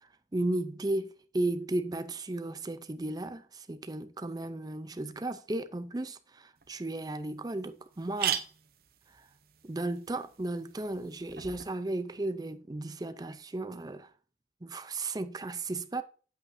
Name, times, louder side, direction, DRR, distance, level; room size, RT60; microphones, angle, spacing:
voice 1, 0.3-8.4 9.6-14.1 14.6-16.0, right 2 dB, 20° right, 0.5 m, -34 dB
sound 1, 6.6-6.7 7.2-7.3 7.5-7.6 7.9-11.7, right 9 dB, 55° right, 0.8 m, -38 dB
8.5 x 8.2 x 2.6 m
head